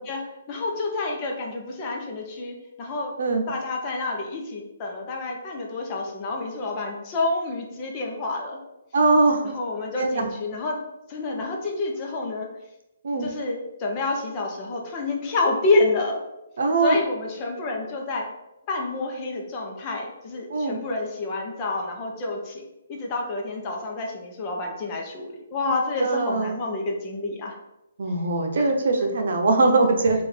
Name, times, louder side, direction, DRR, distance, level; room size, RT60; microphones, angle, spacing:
voice 1, 0.5-3.1 3.5-8.6 9.4-10.8 11.1-12.5 13.2-16.2 16.8-18.2 18.7-22.6 22.9-27.6 28.6-28.7, left 2 dB, 25° left, 0 dB, 0.8 m, -28 dB
voice 2, 8.9-9.6 10.0-10.3 13.0-13.3 16.6-17.0 20.5-20.8 26.0-26.6 28.0-30.2, right 3 dB, 65° right, 3 dB, 0.8 m, -21 dB
3.7 x 2.6 x 4.4 m, 0.92 s
hypercardioid pair, 160°, 0 cm